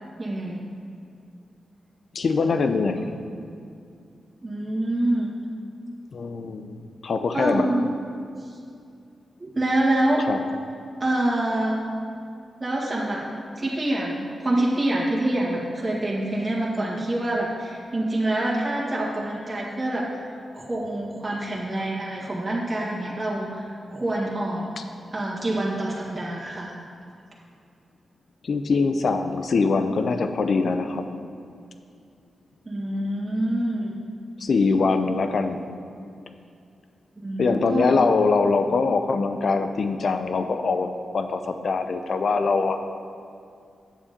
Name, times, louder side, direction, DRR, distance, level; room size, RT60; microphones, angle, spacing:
voice 1, 0.2-0.6 4.4-5.3 7.3-7.8 8.5-8.6 9.4-10.3 11.0-11.8 12.6-13.2 13.6-20.2 20.5-24.7 25.1-26.8 32.7-34.0 37.2-38.1, right 1 dB, 30° right, -5 dB, 1.9 m, -26 dB
voice 2, 2.1-3.1 6.1-7.7 10.3-10.4 24.8-24.9 28.4-31.1 34.4-35.6 37.4-42.8, left 4 dB, 65° left, 8 dB, 0.7 m, -23 dB
9.1 x 7.2 x 5.3 m, 2.4 s
supercardioid pair, 40°, 0 cm